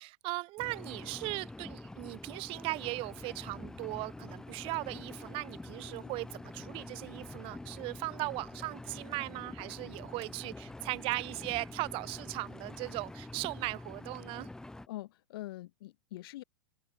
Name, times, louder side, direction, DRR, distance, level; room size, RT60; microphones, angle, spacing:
voice 1, 0.0-14.5, right 23 dB, 40° right, 0.8 m, -38 dB
Engine, 0.6-14.9, left 2 dB, 5° left, 0.6 m, -46 dB
sound 1, 2.5-13.0, left 16 dB, 35° left, 5.5 m, -60 dB
voice 2, 14.9-16.4, left 16 dB, 60° left, 1.6 m, -44 dB
figure-of-eight pair, 95°, 14 cm